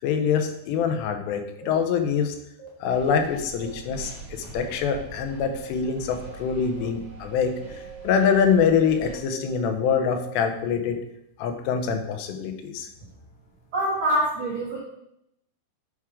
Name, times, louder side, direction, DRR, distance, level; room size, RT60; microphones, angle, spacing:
voice 1, 0.0-2.4 2.8-7.5 8.0-11.0 11.4-12.9, left 6 dB, 80° left, 6 dB, 2.9 m, -24 dB
sound 1, 1.6-1.7 2.6-2.7 3.6-3.7 4.6-4.7 5.6-5.7 6.2-6.3 6.8-6.9 7.3-10.4, right 7 dB, 65° left, 3.0 m, -43 dB
sound 2, 2.9-9.2, right 4 dB, 55° right, 1.7 m, -43 dB
voice 2, 13.7-14.8, right 1 dB, 80° right, -5 dB, 1.1 m, -24 dB
10.5 x 3.6 x 4.8 m, 0.79 s
omnidirectional pair, 5.0 m